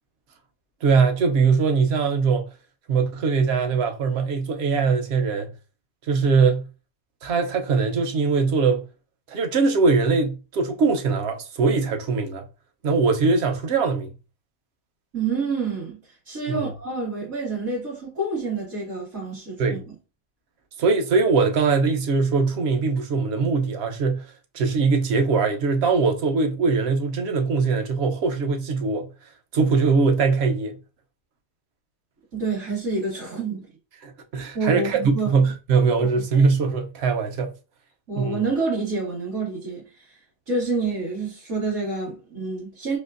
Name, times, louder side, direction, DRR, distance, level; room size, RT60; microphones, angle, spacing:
voice 1, 0.8-2.5 2.9-5.5 6.1-6.7 7.2-8.9 9.3-12.5 12.8-14.1 16.5-16.7 19.6-19.8 20.8-24.3 24.5-29.1 29.5-30.8 34.0-37.5 38.2-38.4, right 4 dB, 65° right, 0.9 m, -21 dB
voice 2, 15.1-16.0 16.3-19.9 32.3-33.7 34.5-35.4 36.1-36.2 38.1-40.2 40.5-43.0, right 3 dB, 85° right, 2.3 m, -28 dB
4.2 x 2.5 x 2.5 m
omnidirectional pair, 1.2 m